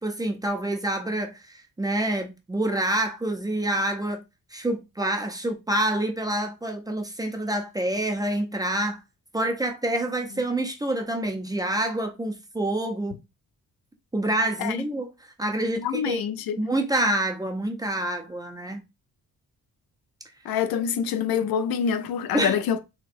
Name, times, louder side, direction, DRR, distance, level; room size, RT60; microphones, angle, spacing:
voice 1, 0.0-4.2 4.5-9.0 9.3-13.2 14.1-16.2 16.6-18.8 22.3-22.5, right 1 dB, 10° right, 0.4 m, -27 dB
voice 2, 15.7-16.6 20.4-22.8, left 8 dB, 85° left, 0.5 m, -26 dB
4.2 x 2.1 x 2.5 m
wide cardioid pair, 155°, 35 cm